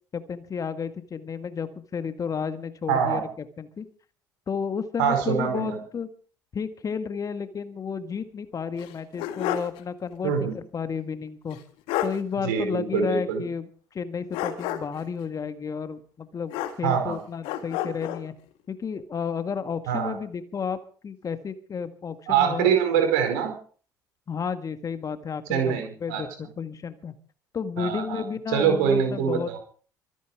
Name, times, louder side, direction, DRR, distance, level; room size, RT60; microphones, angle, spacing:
voice 1, 0.1-3.9 4.5-6.1 6.5-11.6 12.0-13.7 13.9-16.5 16.8-18.3 18.7-22.7 24.3-27.1 27.5-29.5, left 6 dB, 35° left, 10 dB, 1.8 m, -32 dB
voice 2, 2.9-3.2 5.0-5.8 10.2-10.6 12.4-13.4 16.8-17.2 19.9-20.2 22.3-23.5 25.5-26.2 27.8-28.2 28.5-29.6, right 7 dB, 65° right, 6 dB, 4.8 m, -24 dB
sound 1, 8.8-9.8 10.1-10.2 11.5-11.6 11.9-12.2 14.3-15.1 16.5-17.1 17.4-18.3, left 11 dB, 60° left, 1.7 m, -30 dB
24.5 x 9.3 x 4.9 m, 0.42 s
figure-of-eight pair, 55°, 10 cm